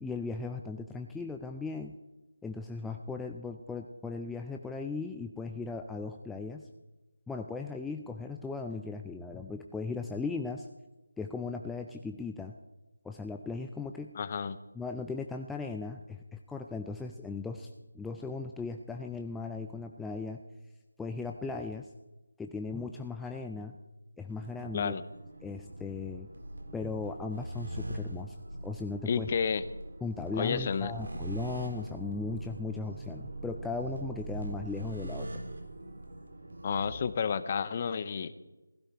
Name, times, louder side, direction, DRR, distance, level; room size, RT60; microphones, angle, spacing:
voice 1, 0.0-2.0 2.4-6.7 7.3-10.7 11.2-12.5 13.0-14.1 14.8-17.7 17.9-20.4 21.0-21.9 22.4-23.8 24.2-24.9 25.4-26.3 26.7-28.3 28.6-29.3 30.0-35.4, left 4 dB, 5° left, 3 dB, 0.4 m, -37 dB
voice 2, 14.1-14.6 24.7-25.0 29.0-29.6 30.3-30.9 36.6-38.3, left 6 dB, 30° left, 14 dB, 0.7 m, -31 dB
sound 1, 24.3-37.0, right 1 dB, 65° right, 3.7 m, -42 dB
15.5 x 15.5 x 4.5 m, 1.1 s
figure-of-eight pair, 170°, 0 cm